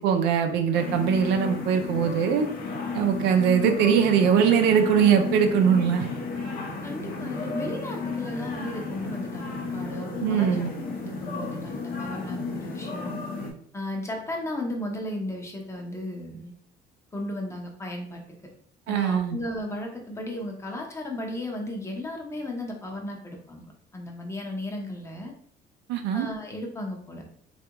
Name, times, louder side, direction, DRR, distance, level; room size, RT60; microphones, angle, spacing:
voice 1, 0.0-2.5 2.9-6.0 10.2-10.7 18.9-19.4 25.9-26.3, right 7 dB, 90° right, 6 dB, 0.5 m, -21 dB
sound 1, 0.7-13.5, left 4 dB, 55° left, 0.7 m, -33 dB
voice 2, 6.8-13.2 13.7-16.5 17.1-18.2 18.9-25.3 26.1-27.3, left 1 dB, 15° left, 1 dB, 0.7 m, -35 dB
3.3 x 2.4 x 2.9 m, 0.62 s
cardioid pair, 110°, 17 cm